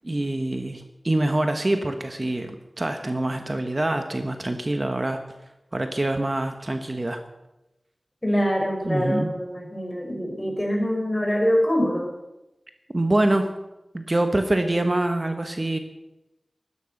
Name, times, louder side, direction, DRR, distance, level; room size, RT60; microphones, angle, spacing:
voice 1, 0.0-5.2 5.7-7.2 8.8-9.3 12.9-13.5 13.9-15.8, right 1 dB, 40° right, 6 dB, 1.2 m, -25 dB
voice 2, 8.2-12.1, equal, 20° left, 1 dB, 5.3 m, -24 dB
14.0 x 13.0 x 6.6 m, 0.96 s
wide cardioid pair, 65°, 0 cm